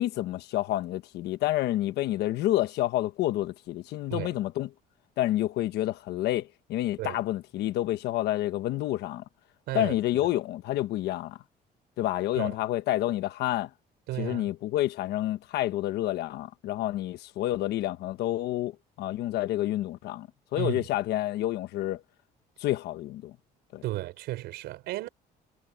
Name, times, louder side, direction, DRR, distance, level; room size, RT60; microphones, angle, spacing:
voice 1, 0.0-4.7 5.2-9.2 9.7-11.4 12.0-13.7 14.2-22.0 22.6-23.3 23.7-23.8, left 14 dB, 80° left, 1.1 m, -29 dB
voice 2, 14.1-14.5 20.6-20.9 23.8-25.1, right 16 dB, 85° right, 4.5 m, -34 dB
cardioid pair, 110°, 17 cm